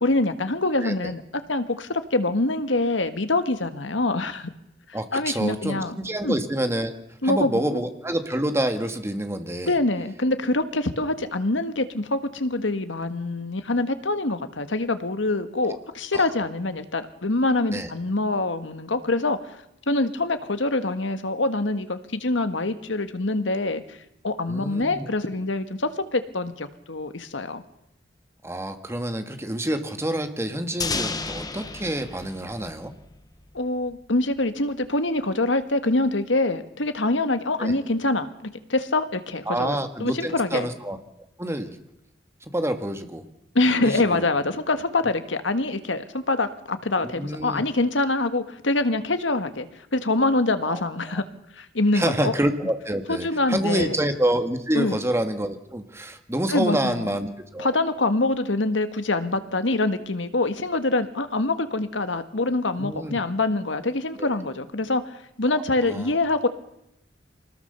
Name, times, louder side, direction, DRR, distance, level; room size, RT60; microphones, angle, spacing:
voice 1, 0.0-1.2 1.5-4.5 4.9-6.0 6.2-6.4 7.2-7.6 9.6-19.6 19.9-24.0 24.2-27.6 33.5-40.7 43.5-49.7 49.9-51.2 51.5-52.3 53.1-53.9 54.7-55.0 56.5-57.1 57.6-66.5, left 2 dB, 85° left, 9 dB, 1.7 m, -25 dB
voice 2, 0.8-1.1 4.9-7.0 7.2-9.7 15.6-15.8 16.1-16.3 17.7-17.9 24.5-25.1 28.4-32.9 37.6-37.8 39.5-41.0 41.4-41.8 42.5-43.2 43.8-44.4 47.0-47.6 50.6-50.8 51.1-51.2 51.9-57.8 62.8-63.2 64.2-64.4 65.5-66.1, right 1 dB, 15° right, 7 dB, 1.8 m, -27 dB
sound 1, 30.8-33.6, left 4 dB, 20° left, 1.1 m, -32 dB
25.0 x 19.5 x 6.9 m, 0.83 s
head